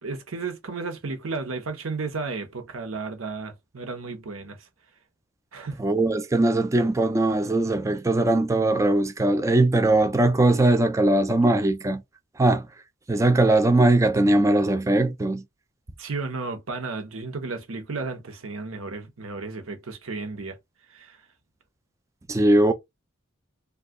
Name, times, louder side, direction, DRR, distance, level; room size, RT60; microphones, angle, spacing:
voice 1, 0.0-4.6 5.5-5.8 16.0-20.6 20.9-21.2, right 3 dB, 70° right, 0.8 m, -33 dB
voice 2, 5.8-12.0 12.4-12.7 13.1-15.4 22.3-22.7, right 2 dB, 15° right, 0.3 m, -20 dB
2.6 x 2.3 x 3.6 m
head